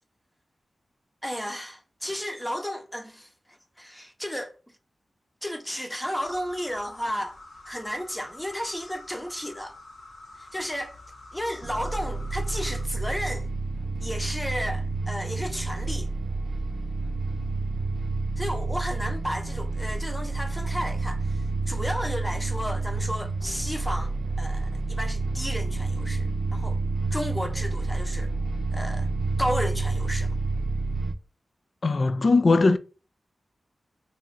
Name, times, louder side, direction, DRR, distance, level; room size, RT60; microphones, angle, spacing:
voice 1, 1.2-3.3 3.8-4.6 5.4-7.4 7.7-9.8 10.4-10.9 11.3-13.5 14.0-16.1 18.4-26.8 27.1-28.3 28.7-29.1 29.4-30.4, equal, 5° left, 0.8 m, -33 dB
sound 1, 6.1-12.8, left 2 dB, 80° left, 1.4 m, -47 dB
sound 2, 11.6-31.1, right 3 dB, 70° right, 0.5 m, -29 dB
voice 2, 31.8-32.8, left 3 dB, 60° left, 0.4 m, -19 dB
3.1 x 2.4 x 4.0 m
cardioid pair, 50°, 0 cm